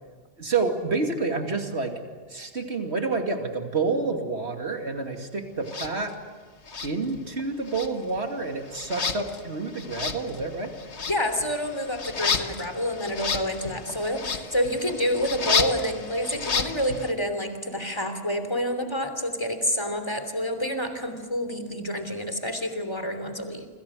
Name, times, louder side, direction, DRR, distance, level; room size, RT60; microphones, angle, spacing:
voice 1, 0.4-2.0 2.3-6.1 6.8-10.7, right 3 dB, 75° right, 4 dB, 2.9 m, -28 dB
sound 1, 5.7-5.9 6.7-7.4 7.7-17.1, left 5 dB, 85° left, 1.7 m, -31 dB
voice 2, 11.1-23.7, equal, 25° left, 7 dB, 3.1 m, -28 dB
28.0 x 26.5 x 6.4 m, 1.4 s
omnidirectional pair, 1.1 m